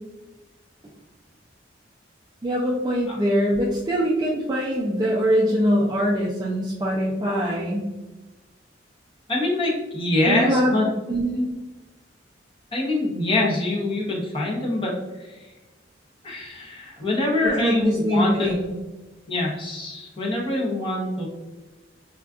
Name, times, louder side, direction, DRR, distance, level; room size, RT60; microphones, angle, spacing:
voice 1, 2.4-7.9 10.3-11.5 17.6-18.7, equal, 20° right, -4 dB, 0.3 m, -23 dB
voice 2, 9.3-10.8 12.7-15.4 16.2-18.5 19.3-21.3, left 2 dB, 25° left, -2 dB, 0.7 m, -24 dB
3.5 x 2.3 x 2.3 m, 1.1 s
head